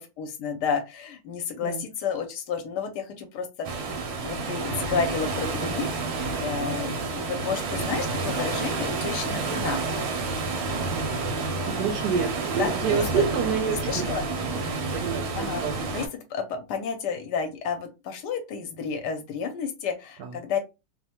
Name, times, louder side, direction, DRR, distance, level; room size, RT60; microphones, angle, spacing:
voice 1, 0.0-3.7 4.2-9.9 12.6-13.2 13.6-14.2 15.4-20.6, left 6 dB, 70° left, 6 dB, 1.1 m, -31 dB
sound 1, 3.6-16.1, right 3 dB, 90° right, 1.4 m, -29 dB
voice 2, 11.6-14.2 14.9-15.7 20.2-20.3, right 7 dB, 70° right, 4 dB, 1.0 m, -28 dB
3.2 x 2.1 x 2.8 m, 0.26 s
omnidirectional pair, 2.0 m